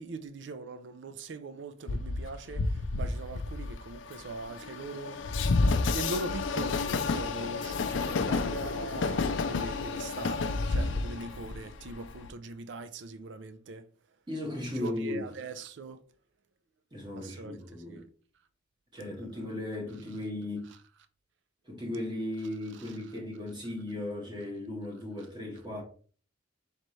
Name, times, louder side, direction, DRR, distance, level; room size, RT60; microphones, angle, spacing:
voice 1, 0.0-13.9 14.7-16.0 17.1-18.1 19.0-19.5, right 3 dB, 70° right, 0.4 m, -41 dB
Train, 1.9-12.3, left 3 dB, 75° left, 0.4 m, -30 dB
voice 2, 14.3-15.2 16.9-18.0 18.9-20.7 21.6-25.8, left 1 dB, 25° right, 1.3 m, -36 dB
4.0 x 3.3 x 3.1 m
head